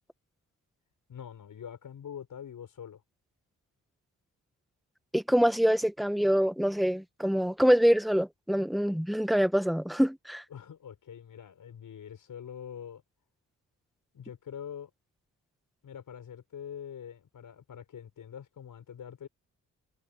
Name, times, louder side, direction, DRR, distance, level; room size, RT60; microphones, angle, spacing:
voice 1, 1.1-3.0 10.5-13.0 14.1-14.9 15.8-19.3, left 8 dB, 75° left, 6.1 m, -44 dB
voice 2, 5.1-10.4, equal, ahead, 1.4 m, -25 dB
cardioid pair, 85°, 33 cm